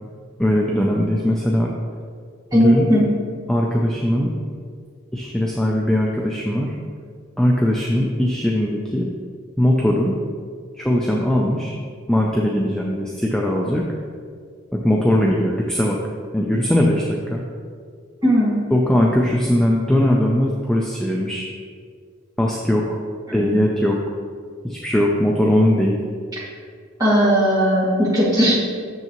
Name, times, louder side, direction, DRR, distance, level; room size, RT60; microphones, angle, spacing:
voice 1, 0.4-1.7 2.5-2.8 3.5-4.3 5.1-6.7 7.4-9.1 9.6-10.1 10.7-11.7 12.1-13.8 14.7-16.0 16.3-17.4 18.7-21.5 22.4-23.0 23.3-24.0 24.6-26.0, left 1 dB, 5° left, -2 dB, 0.4 m, -20 dB
voice 2, 2.5-3.0 18.2-18.6 23.4-23.5 26.4-26.5 27.0-28.6, equal, 15° right, -8 dB, 2.0 m, -17 dB
8.2 x 6.7 x 3.0 m, 2.1 s
head